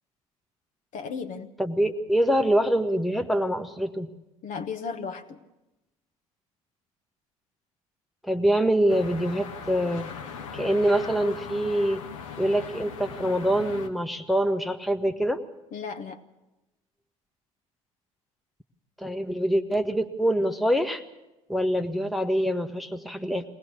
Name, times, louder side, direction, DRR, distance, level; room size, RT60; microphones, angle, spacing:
voice 1, 0.9-1.5 4.4-5.4 15.7-16.2, left 5 dB, 45° left, 1.3 m, -35 dB
voice 2, 1.6-4.1 8.2-10.1 10.5-12.0 12.4-15.4 19.0-21.0 21.5-23.4, equal, ahead, 1.0 m, -25 dB
sound 1, 8.9-13.9, left 6 dB, 65° left, 1.4 m, -39 dB
22.0 x 18.5 x 6.4 m
figure-of-eight pair, 60°, 18 cm